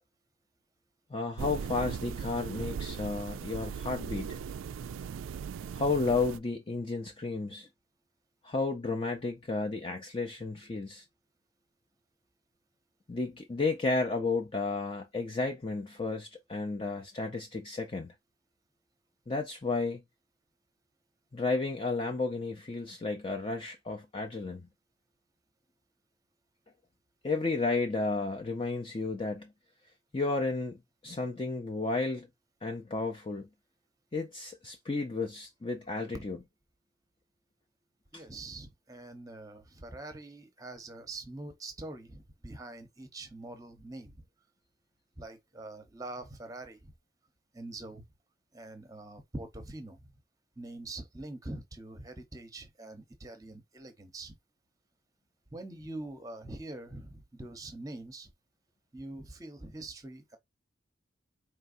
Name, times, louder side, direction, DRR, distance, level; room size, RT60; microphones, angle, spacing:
voice 1, 1.1-4.4 5.7-7.7 8.4-11.0 13.1-18.1 19.3-20.0 21.3-24.7 27.2-29.5 30.1-32.3 32.6-33.5 34.1-36.4 38.1-38.2, left 3 dB, 25° left, 0.5 m, -32 dB
sound 1, 1.4-6.4, right 6 dB, 75° right, 0.3 m, -38 dB
voice 2, 38.1-44.2 45.2-46.9 47.5-48.0 48.5-50.1 50.6-54.3 55.5-58.3 58.9-60.4, right 2 dB, 15° right, 0.8 m, -44 dB
4.5 x 3.2 x 2.5 m
head